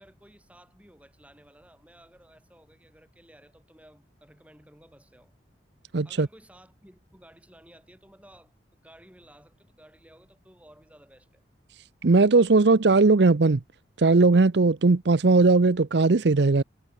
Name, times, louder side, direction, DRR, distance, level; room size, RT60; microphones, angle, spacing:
voice 1, 0.0-5.3 6.0-11.4, right 1 dB, 5° right, 7.8 m, -55 dB
voice 2, 5.9-6.3 12.0-13.6 14.0-16.6, right 3 dB, 65° right, 0.6 m, -19 dB
head